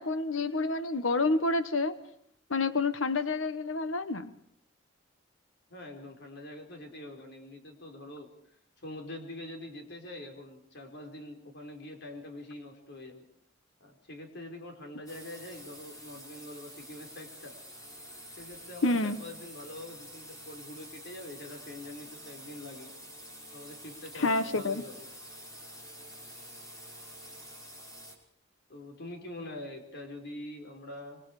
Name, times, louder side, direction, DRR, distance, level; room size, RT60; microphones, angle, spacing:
voice 1, 0.0-1.9 2.5-4.3 18.8-19.2 24.1-24.8, left 3 dB, 75° left, 12 dB, 1.2 m, -28 dB
voice 2, 5.7-8.3 8.8-13.3 13.8-17.6 18.3-22.9 23.5-25.1 28.7-31.2, left 1 dB, 60° left, 3 dB, 5.0 m, -44 dB
sound 1, 15.1-28.2, equal, 20° left, 5.7 m, -48 dB
27.5 x 24.0 x 4.9 m, 0.65 s
head